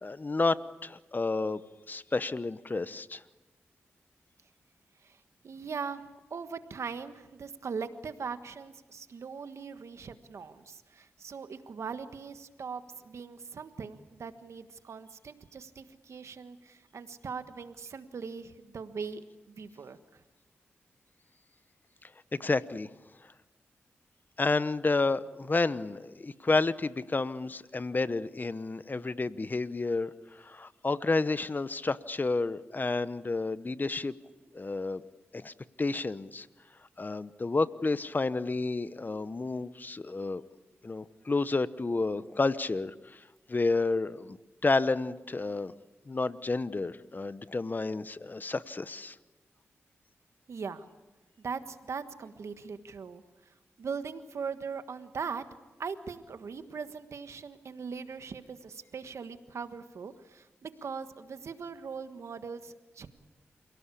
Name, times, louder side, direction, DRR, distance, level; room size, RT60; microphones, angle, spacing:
voice 1, 0.0-1.6 1.9-3.2 22.0-22.9 24.4-34.1 34.5-35.0 35.3-36.5 37.0-40.4 40.8-43.2 43.5-44.4 44.6-45.7 46.1-49.2, left 3 dB, 40° left, 15 dB, 1.0 m, -30 dB
voice 2, 5.0-6.0 6.3-20.2 50.5-50.9 51.4-55.4 55.8-63.1, right 5 dB, 75° right, 10 dB, 1.5 m, -40 dB
28.0 x 17.5 x 8.4 m, 1.1 s
cardioid pair, 50°, 5 cm